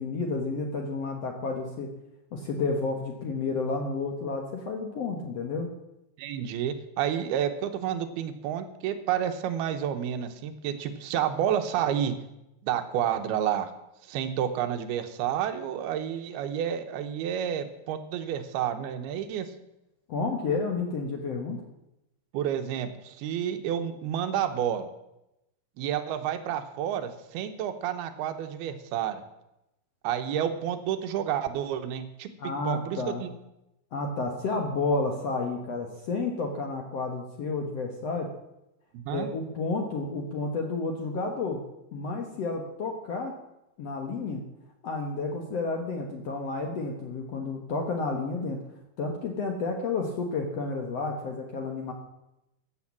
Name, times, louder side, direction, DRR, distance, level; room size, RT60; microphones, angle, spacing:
voice 1, 0.0-1.9 2.3-5.7 20.1-21.6 32.4-33.2 33.9-38.3 39.1-41.6 41.9-43.3 43.8-44.4 44.8-48.6 49.0-51.9, left 3 dB, 60° left, 2 dB, 1.8 m, -31 dB
voice 2, 6.2-12.1 12.6-13.7 14.1-19.5 22.3-24.9 25.8-29.2 30.0-32.3 32.7-33.3 38.9-39.3, right 9 dB, 85° right, 8 dB, 2.9 m, -30 dB
14.5 x 7.3 x 7.3 m, 0.89 s
omnidirectional pair, 4.5 m